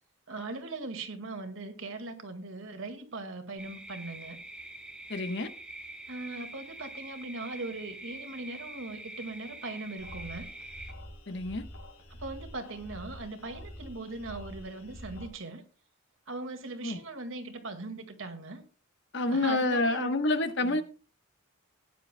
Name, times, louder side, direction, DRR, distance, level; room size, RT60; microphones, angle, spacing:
voice 1, 0.3-4.4 6.1-10.5 12.2-15.6 16.3-18.6 19.3-20.2 20.6-20.8, right 2 dB, 65° right, 1.9 m, -40 dB
sound 1, 3.6-10.9, right 1 dB, 5° right, 1.1 m, -45 dB
voice 2, 5.1-5.5 11.3-11.6 16.8-17.0 19.1-20.8, left 2 dB, 55° left, 1.1 m, -28 dB
sound 2, 10.0-15.3, equal, 85° left, 3.7 m, -46 dB
18.5 x 10.0 x 2.2 m
head